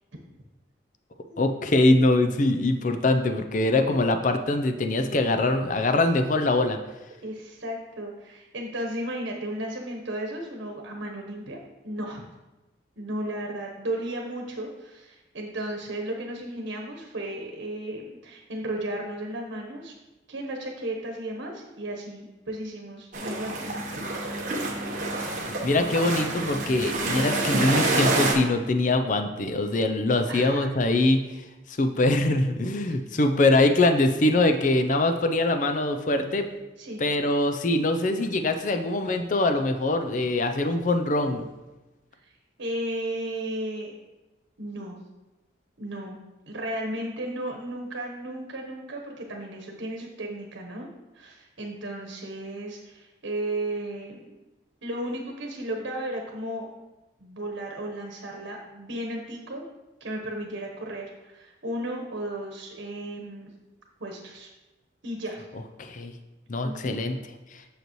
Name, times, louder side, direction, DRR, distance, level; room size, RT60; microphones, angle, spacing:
voice 1, 1.4-6.8 25.2-25.3 25.6-31.2 31.7-36.5 37.0-41.4 65.8-66.1 66.5-67.2, left 2 dB, 40° left, 7 dB, 0.5 m, -23 dB
voice 2, 7.2-11.6 11.8-12.2 13.0-19.9 20.3-24.0 30.3-30.7 32.9-33.0 36.8-37.0 42.2-42.3 42.6-43.9 44.6-45.0 45.8-46.2 46.5-50.9 51.1-54.3 54.8-56.7 57.2-59.6 60.0-63.5 64.0-64.5 65.0-65.4 66.6-67.0, right 1 dB, 90° right, 1 dB, 1.1 m, -34 dB
sound 1, 23.1-28.3, right 2 dB, 40° right, 1.1 m, -27 dB
7.9 x 6.6 x 3.1 m, 1.1 s
head